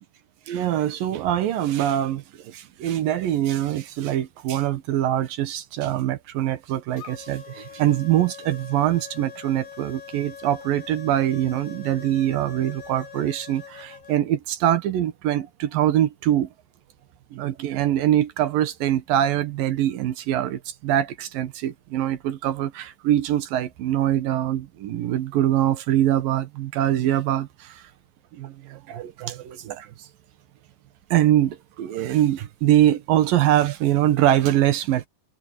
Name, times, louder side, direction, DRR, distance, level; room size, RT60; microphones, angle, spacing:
voice 1, 0.5-16.5 17.3-27.9 28.3-29.9 31.1-35.1, right 12 dB, 85° right, 3.1 m, -23 dB
sound 1, 7.0-14.2, left 8 dB, 40° left, 2.1 m, -43 dB
omnidirectional pair, 3.9 m